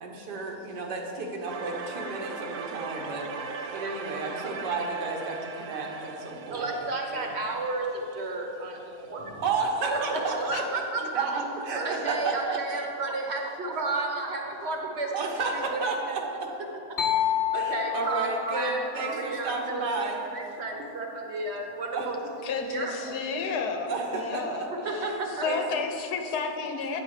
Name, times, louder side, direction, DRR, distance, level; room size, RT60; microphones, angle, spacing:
voice 1, 0.0-6.7 7.1-7.3 9.4-12.9 15.1-16.5 17.5-20.2 21.9-22.1 23.9-24.9 25.4-25.6, right 3 dB, 90° right, 1 dB, 1.7 m, -32 dB
sound 1, 1.5-8.3, right 5 dB, 70° right, 0.7 m, -39 dB
voice 2, 6.3-9.4 9.9-11.2 11.8-15.1 15.5-16.2 17.1-20.0 20.3-22.2 22.5-23.4 24.7-25.4, right 3 dB, 45° right, 1 dB, 1.0 m, -32 dB
sound 2, 17.0-20.7, left 10 dB, 55° left, 0.8 m, -31 dB
voice 3, 22.4-25.1 25.4-27.0, left 4 dB, 75° left, 5 dB, 1.2 m, -31 dB
9.1 x 6.0 x 4.9 m, 2.9 s
omnidirectional pair, 1.8 m